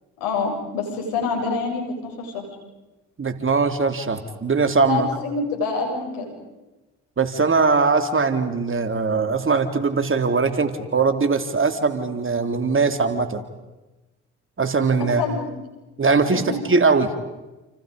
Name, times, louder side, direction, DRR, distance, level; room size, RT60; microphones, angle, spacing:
voice 1, 0.2-2.5 4.9-6.3 15.0-15.5 16.2-16.6, left 4 dB, 80° left, 2 dB, 7.4 m, -26 dB
voice 2, 3.2-5.1 7.2-13.4 14.6-15.2 16.0-17.1, right 4 dB, 35° right, 7 dB, 3.4 m, -21 dB
29.5 x 29.5 x 5.4 m, 1.1 s
hypercardioid pair, 50°, 35 cm